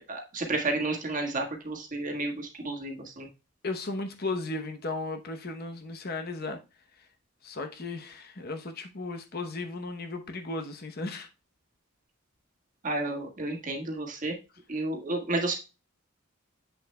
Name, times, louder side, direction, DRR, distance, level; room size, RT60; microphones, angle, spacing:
voice 1, 0.0-3.3 12.8-14.3 14.7-15.5, right 2 dB, 40° right, 1.6 m, -31 dB
voice 2, 3.6-6.6 7.4-11.3, left 3 dB, 45° left, 0.9 m, -35 dB
7.9 x 6.4 x 2.2 m
head